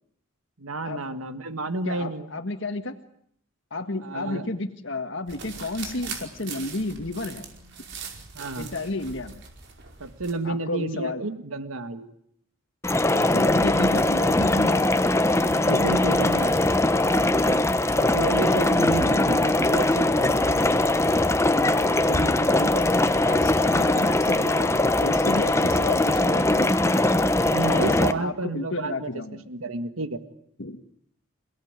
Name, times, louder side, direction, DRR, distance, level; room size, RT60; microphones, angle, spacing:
voice 1, 0.6-2.3 4.0-4.5 8.3-8.7 10.0-12.1 15.6-16.6 17.9-20.6 27.5-29.1 29.5-30.2, right 3 dB, 90° right, 10 dB, 1.7 m, -31 dB
voice 2, 1.8-3.0 3.7-7.5 8.6-9.4 10.4-11.2 13.1-14.9 18.5-18.9 19.1-19.3 21.6-22.9 23.2-27.3 27.6-29.4 30.6-30.8, left 2 dB, 60° left, 5 dB, 1.6 m, -32 dB
sound 1, 5.3-10.3, right 5 dB, 55° right, 5.0 m, -40 dB
sound 2, 12.8-28.1, left 2 dB, 15° left, 1.1 m, -21 dB
28.5 x 17.5 x 9.6 m, 0.69 s
head